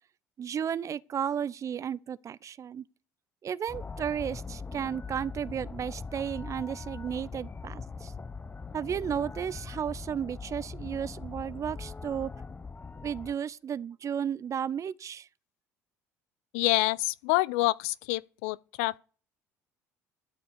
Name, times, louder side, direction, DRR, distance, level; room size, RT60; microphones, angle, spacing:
voice 1, 0.4-2.8 3.4-8.1 8.7-12.3 13.0-15.3, right 8 dB, 40° right, 0.7 m, -33 dB
sound 1, 3.7-13.3, left 4 dB, 20° left, 0.7 m, -41 dB
voice 2, 16.5-19.0, left 20 dB, 70° left, 0.5 m, -27 dB
13.0 x 5.6 x 8.2 m
hypercardioid pair, 60°, 8 cm